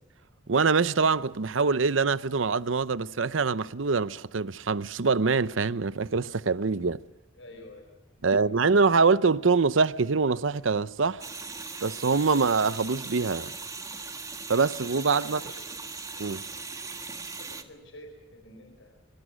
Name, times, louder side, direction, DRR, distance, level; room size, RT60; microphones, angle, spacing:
voice 1, 0.5-7.0 8.2-11.2 11.8-13.5 14.5-15.4 16.2-16.4, right 4 dB, 85° right, 0.7 m, -24 dB
voice 2, 7.4-8.4 15.2-15.6 17.4-19.1, left 1 dB, 80° left, 4.9 m, -49 dB
sound 1, 11.2-17.6, right 4 dB, 20° right, 1.6 m, -39 dB
25.0 x 25.0 x 6.3 m
head